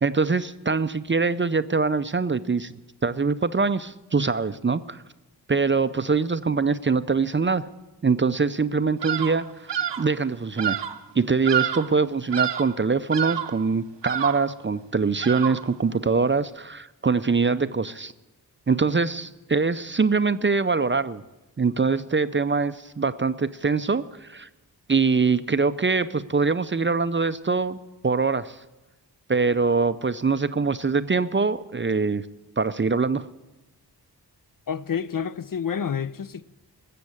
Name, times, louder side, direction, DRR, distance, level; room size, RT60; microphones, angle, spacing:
voice 1, 0.0-2.7 3.0-5.0 5.5-7.6 8.0-9.5 10.0-10.8 11.2-18.1 18.7-21.2 21.6-24.5 24.9-27.8 28.0-28.6 29.3-32.2 32.6-33.3, right 4 dB, 30° right, 0.5 m, -23 dB
Bird vocalization bird call bird song, 9.0-9.4 9.7-10.1 10.6-11.0 11.5-12.0 12.3-12.8 13.1-13.6 14.0-14.5 15.2-15.7, right 10 dB, 85° right, 0.8 m, -28 dB
voice 2, 34.7-36.4, left 7 dB, 50° left, 0.5 m, -29 dB
13.5 x 7.7 x 9.6 m
wide cardioid pair, 65°, 42 cm